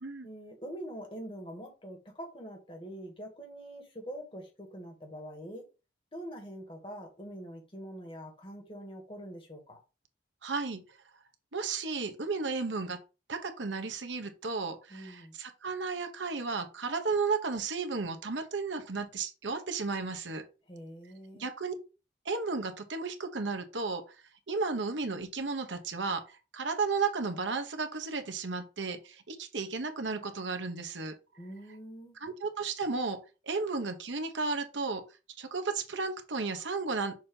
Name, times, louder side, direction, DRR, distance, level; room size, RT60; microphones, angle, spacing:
voice 1, 0.2-5.6 6.1-9.8 14.9-15.3 20.7-21.5 31.3-32.2, equal, 30° left, 1.6 m, -44 dB
voice 2, 10.4-10.8 11.5-13.0 13.3-20.4 21.4-21.7 22.2-24.0 24.5-31.1 32.2-33.2 33.5-35.0 35.4-37.1, right 4 dB, 90° right, 1.1 m, -33 dB
6.4 x 2.9 x 5.3 m
head